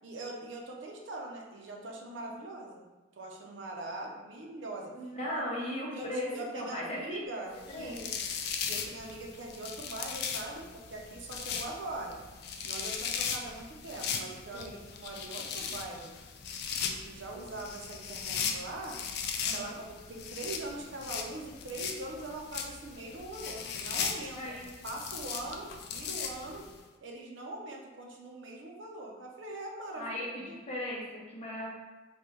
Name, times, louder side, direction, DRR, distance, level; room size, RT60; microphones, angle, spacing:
voice 1, 0.0-2.9 3.2-4.9 5.3-5.4 5.9-6.1 6.3-8.1 8.7-12.2 12.6-16.1 16.8-19.0 19.5-24.4 24.8-26.7 27.0-30.6, right 2 dB, 75° right, 0 dB, 0.5 m, -42 dB
voice 2, 4.9-8.2 14.5-14.8 19.4-19.8 24.3-24.7 29.9-31.7, left 1 dB, 35° left, -5 dB, 0.7 m, -38 dB
sound 1, 7.6-26.8, left 6 dB, 60° left, 0.3 m, -38 dB
3.3 x 2.2 x 3.0 m, 1.2 s
head